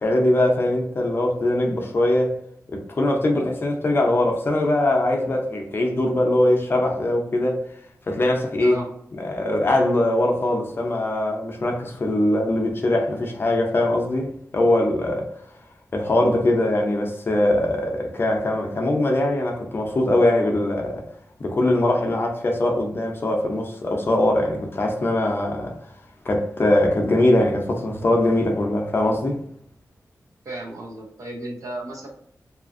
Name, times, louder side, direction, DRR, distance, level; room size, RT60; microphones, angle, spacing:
voice 1, 0.0-2.4 2.7-7.6 8.1-8.8 9.2-15.3 15.9-21.0 21.4-25.8 26.2-29.4, left 1 dB, 40° left, 0.5 m, -21 dB
voice 2, 8.6-8.9 30.4-32.1, right 2 dB, 70° right, 0.7 m, -34 dB
2.7 x 2.4 x 2.5 m
wide cardioid pair, 155°, 6 cm